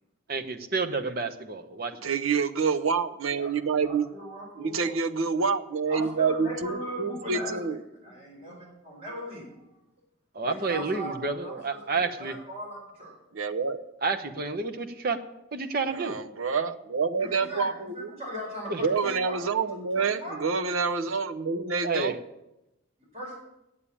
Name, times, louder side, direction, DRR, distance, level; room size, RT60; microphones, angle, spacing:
voice 1, 0.3-1.9 10.3-12.4 14.0-15.2 15.5-16.2 18.7-18.8 21.8-22.1, right 4 dB, 50° right, 7 dB, 0.9 m, -30 dB
voice 2, 2.0-4.1 4.6-7.8 13.3-13.8 15.9-18.1 18.8-22.1, right 5 dB, 90° right, 9 dB, 0.7 m, -27 dB
voice 3, 3.7-4.9 5.9-7.7 8.0-9.6 10.4-13.1 17.2-17.7 17.9-19.4 20.0-20.4 23.1-23.3, equal, 30° right, -4 dB, 4.7 m, -39 dB
8.8 x 8.5 x 8.6 m, 0.90 s
head